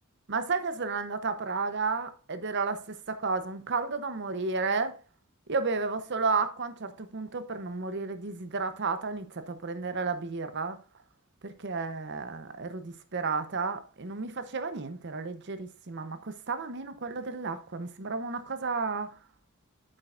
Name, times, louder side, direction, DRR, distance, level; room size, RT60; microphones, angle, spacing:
voice 1, 0.3-5.0 5.5-10.8 11.4-19.1, right 4 dB, 55° right, 0.8 m, -32 dB
9.1 x 7.6 x 2.5 m
head